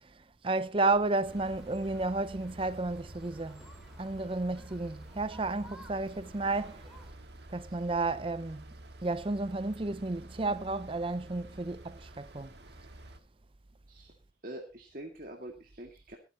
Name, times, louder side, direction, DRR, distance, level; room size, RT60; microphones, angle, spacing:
voice 1, 0.4-3.6 4.0-6.8 7.5-8.6 9.0-12.5, right 2 dB, 30° right, 0.6 m, -32 dB
sound 1, 0.9-7.1, equal, ahead, 3.5 m, -53 dB
sound 2, 1.3-13.2, right 1 dB, 70° right, 2.0 m, -50 dB
voice 2, 14.4-16.2, right 1 dB, 50° right, 2.2 m, -45 dB
24.0 x 9.5 x 3.0 m
head